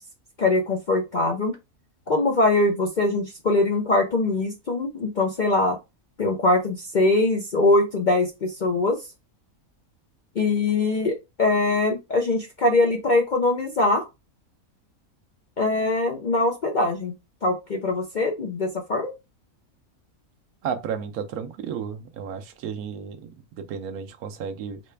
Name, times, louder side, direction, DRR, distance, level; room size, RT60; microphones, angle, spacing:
voice 1, 0.4-1.5 2.1-5.8 6.2-9.0 10.4-14.1 15.6-17.1 17.4-19.1, left 2 dB, 55° left, 0.5 m, -22 dB
voice 2, 20.6-23.2 23.6-24.8, right 7 dB, 85° right, 1.1 m, -32 dB
4.1 x 2.2 x 3.3 m
omnidirectional pair, 1.5 m